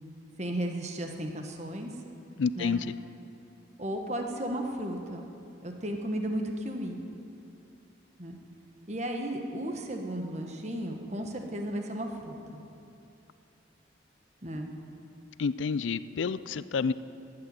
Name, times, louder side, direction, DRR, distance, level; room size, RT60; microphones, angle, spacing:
voice 1, 0.4-1.9 2.6-2.8 3.8-5.3 5.6-7.0 8.2-8.4 8.9-12.4 14.4-14.7, right 1 dB, 35° right, 3 dB, 1.3 m, -34 dB
voice 2, 2.4-2.9 15.4-16.9, left 5 dB, 80° left, 16 dB, 0.4 m, -29 dB
13.0 x 9.0 x 9.5 m, 2.7 s
head